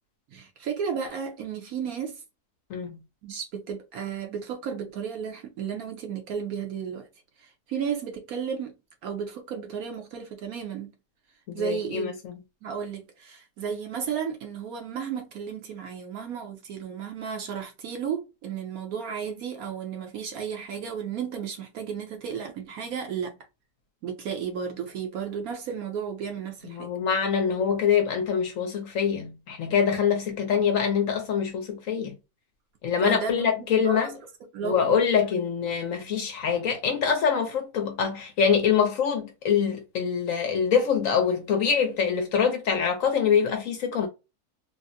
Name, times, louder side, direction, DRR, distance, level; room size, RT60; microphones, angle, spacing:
voice 1, 0.3-2.2 3.2-7.1 7.4-8.8 9.0-10.9 11.5-12.1 12.6-23.3 24.0-26.9 33.0-34.1 34.5-34.9, right 7 dB, 70° right, 1.0 m, -33 dB
voice 2, 11.5-12.3 26.7-32.1 32.8-34.1 34.6-44.1, left 7 dB, 65° left, 0.9 m, -24 dB
3.4 x 2.0 x 2.6 m
omnidirectional pair, 1.7 m